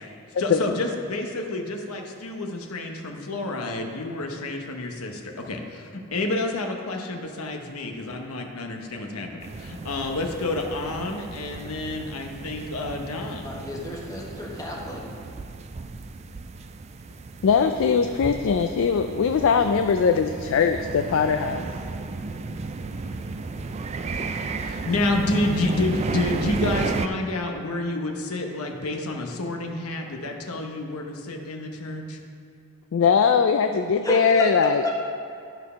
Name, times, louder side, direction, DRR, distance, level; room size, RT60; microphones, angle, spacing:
voice 1, 0.4-13.5 24.6-32.2, left 2 dB, 90° left, 2 dB, 1.0 m, -29 dB
sound 1, 9.4-27.1, right 3 dB, 30° right, 0.3 m, -34 dB
voice 2, 13.4-15.0 34.0-34.5 34.8-34.9, equal, 15° left, -2 dB, 1.1 m, -31 dB
voice 3, 17.4-21.6 32.9-34.9, left 6 dB, 60° left, 7 dB, 0.3 m, -21 dB
10.5 x 4.6 x 5.6 m, 2.7 s
head